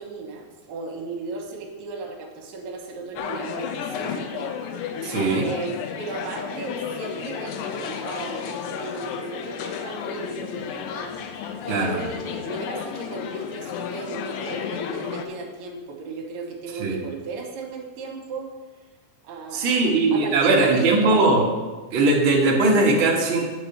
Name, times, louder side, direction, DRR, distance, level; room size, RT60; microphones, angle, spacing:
voice 1, 0.0-4.5 5.2-11.4 11.7-18.5 19.2-21.2, right 4 dB, 75° right, 1 dB, 3.2 m, -36 dB
sound 1, 3.2-15.3, left 7 dB, 85° left, 2.9 m, -32 dB
voice 2, 5.0-5.5 11.7-12.0 16.7-17.0 19.5-21.4 21.9-23.5, right 2 dB, 55° right, -3 dB, 1.4 m, -20 dB
8.6 x 6.0 x 6.7 m, 1.3 s
omnidirectional pair, 4.7 m